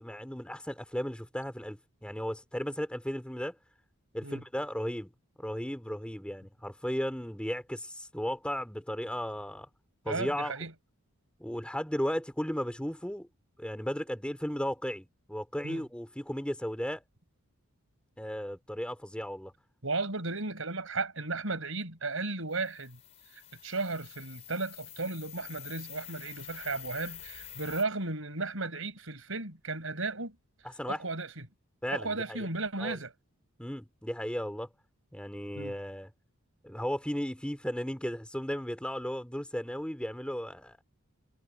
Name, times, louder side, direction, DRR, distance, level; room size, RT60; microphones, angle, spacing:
voice 1, 0.0-3.6 4.1-5.1 5.4-9.7 10.0-10.5 11.4-13.3 13.6-17.0 18.2-19.5 30.8-31.0 31.8-32.5 32.8-33.0 33.6-34.7 35.1-36.1 36.6-40.8, equal, 5° left, 2.7 m, -35 dB
voice 2, 10.1-10.7 15.6-15.8 19.8-23.0 23.3-30.4 30.9-31.5 31.9-33.1 35.6-35.7, right 3 dB, 65° right, 5.5 m, -35 dB
sound 1, 22.5-27.8, left 11 dB, 30° left, 3.3 m, -47 dB
head